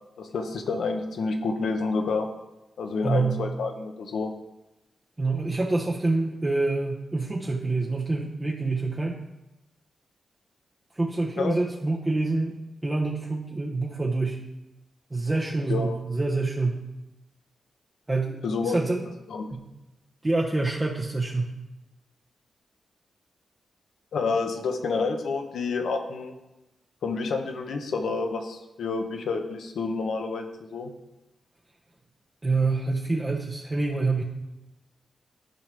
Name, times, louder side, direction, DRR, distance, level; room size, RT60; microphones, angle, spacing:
voice 1, 0.2-2.3 2.8-4.3 11.4-11.6 15.7-16.0 18.4-18.8 19.3-19.5 24.1-26.3 27.0-30.9, left 4 dB, 80° left, 5 dB, 0.9 m, -29 dB
voice 2, 3.0-3.4 5.2-9.2 10.9-12.6 12.8-14.4 15.1-16.8 18.1-19.0 19.5-19.6 20.2-21.5 32.4-34.2, right 3 dB, 30° right, -3 dB, 0.9 m, -26 dB
11.5 x 5.0 x 3.4 m, 0.98 s
cardioid pair, 60°, 0 cm